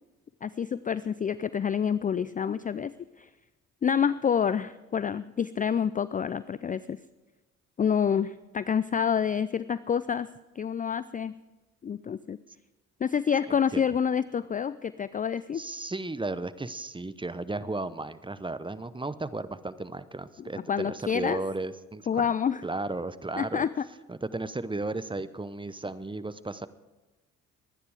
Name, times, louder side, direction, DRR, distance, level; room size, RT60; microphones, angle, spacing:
voice 1, 0.4-2.9 3.2-3.3 3.8-7.0 7.8-10.3 10.6-11.3 11.8-12.4 13.0-15.6 20.7-21.4 22.1-22.6 23.4-23.8, left 7 dB, 20° left, 16 dB, 0.4 m, -28 dB
voice 2, 15.5-22.3 22.6-23.7 24.1-26.7, right 2 dB, 10° right, 14 dB, 0.8 m, -34 dB
23.5 x 9.8 x 4.8 m, 1.1 s
hypercardioid pair, 50°, 41 cm